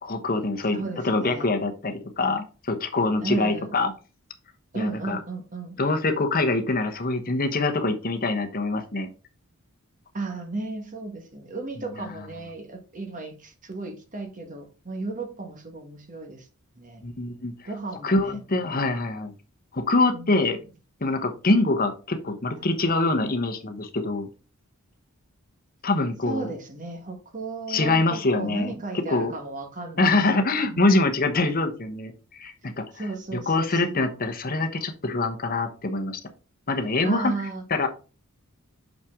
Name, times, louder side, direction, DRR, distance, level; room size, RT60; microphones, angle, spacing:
voice 1, 0.0-0.8 1.0-3.9 4.7-5.2 5.8-9.1 12.0-12.1 17.0-17.5 18.0-19.3 19.7-20.6 21.0-24.3 25.8-26.5 27.7-28.7 29.1-29.3 30.0-33.0 33.5-36.2 36.7-37.3 37.7-37.9, left 2 dB, 40° left, 1.0 m, -24 dB
voice 2, 0.7-1.5 3.2-3.7 4.7-5.8 10.1-16.5 16.8-17.0 17.6-18.4 20.1-20.6 22.6-22.7 26.2-31.1 32.9-34.0 37.0-37.6, right 3 dB, 35° right, 1.4 m, -34 dB
6.5 x 5.7 x 3.6 m
head